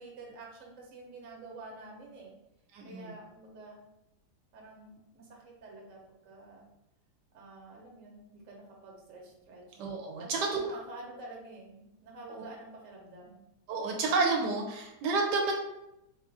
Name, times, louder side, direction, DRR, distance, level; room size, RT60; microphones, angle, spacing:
voice 1, 0.0-2.3 2.8-3.8 4.5-6.6 7.3-9.8 10.2-13.4, right 2 dB, 55° right, 0 dB, 1.1 m, -49 dB
voice 2, 2.7-3.1 9.8-10.6 12.2-12.5 13.7-15.5, right 3 dB, 80° right, 1 dB, 1.2 m, -30 dB
3.7 x 2.4 x 4.0 m, 0.88 s
omnidirectional pair, 1.8 m